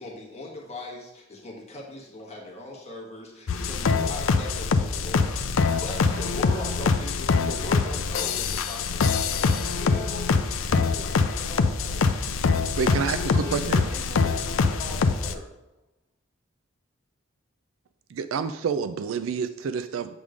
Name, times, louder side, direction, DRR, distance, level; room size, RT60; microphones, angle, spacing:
voice 1, 0.0-10.0, left 2 dB, 35° left, -1 dB, 1.3 m, -39 dB
sound 1, 3.5-15.3, left 4 dB, 85° left, 0.5 m, -24 dB
voice 2, 5.7-7.0 9.8-12.2 12.7-15.5, left 2 dB, 40° right, -6 dB, 2.3 m, -41 dB
voice 3, 12.8-13.8 18.1-20.1, right 6 dB, 85° right, 11 dB, 0.4 m, -28 dB
7.8 x 3.6 x 4.9 m, 0.93 s
head